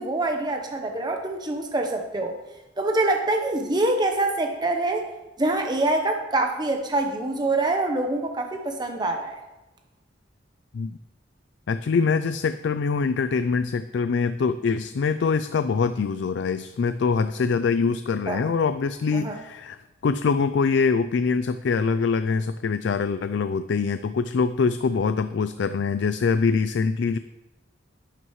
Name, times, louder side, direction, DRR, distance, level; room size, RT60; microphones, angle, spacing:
voice 1, 0.0-2.3 2.8-5.0 5.4-9.3 18.3-18.4 19.1-19.4, right 2 dB, 25° right, 3 dB, 0.8 m, -25 dB
voice 2, 11.7-19.8 20.0-27.2, left 5 dB, 65° left, 12 dB, 0.4 m, -24 dB
11.0 x 11.0 x 3.1 m, 1.1 s
head